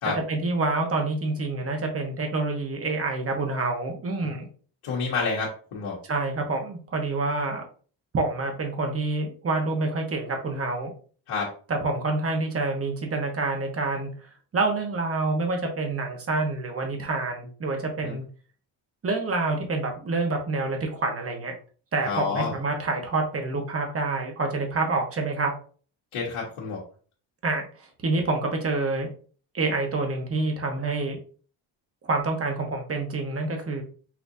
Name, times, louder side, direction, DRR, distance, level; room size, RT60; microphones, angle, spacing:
voice 1, 0.3-4.5 6.1-7.6 8.1-10.9 11.7-14.1 14.5-18.2 19.0-21.6 21.9-25.5 27.4-29.1 29.5-31.2 32.0-33.8, right 3 dB, 30° right, 3 dB, 1.0 m, -27 dB
voice 2, 4.8-6.0 11.3-11.5 18.0-18.1 22.0-22.5 26.1-26.8, left 4 dB, 90° left, -5 dB, 1.6 m, -29 dB
5.8 x 2.9 x 2.6 m, 0.41 s
cardioid pair, 150°, 48 cm